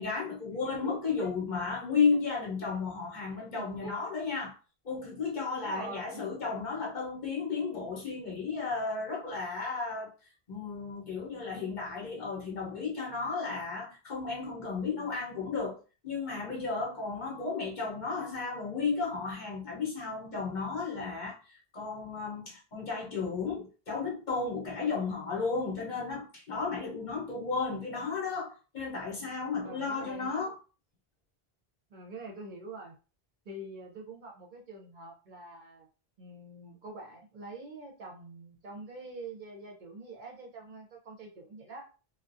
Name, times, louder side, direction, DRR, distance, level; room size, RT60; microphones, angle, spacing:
voice 1, 0.0-4.5 4.8-10.1 10.5-15.8 16.0-30.6, left 4 dB, 50° left, 0.9 m, -33 dB
voice 2, 0.8-1.3 2.1-2.2 3.4-4.0 5.6-6.3 29.6-30.3 31.9-32.9 33.5-35.9 36.2-41.9, right 2 dB, 55° right, 0.7 m, -45 dB
2.3 x 2.1 x 2.5 m
omnidirectional pair, 1.0 m